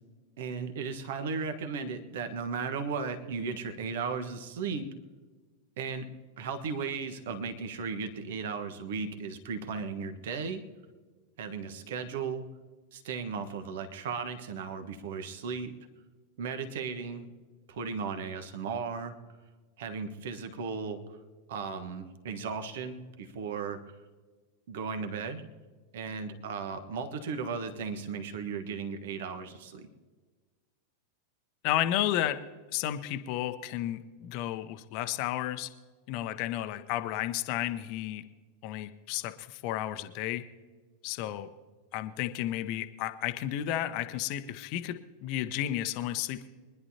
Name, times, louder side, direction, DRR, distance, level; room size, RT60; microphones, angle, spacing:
voice 1, 0.4-4.9 5.8-6.1 6.4-10.6 11.4-12.4 12.9-15.7 16.4-17.3 17.7-19.1 19.8-21.0 21.5-23.8 24.7-25.5 25.9-29.9, right 5 dB, 55° right, 8 dB, 1.3 m, -36 dB
voice 2, 31.6-32.4 32.7-35.7 36.1-38.2 38.6-40.4 41.0-41.5 41.9-46.5, left 12 dB, 45° left, 10 dB, 0.8 m, -32 dB
24.5 x 11.0 x 2.9 m, 1.4 s
figure-of-eight pair, 90°, 0 cm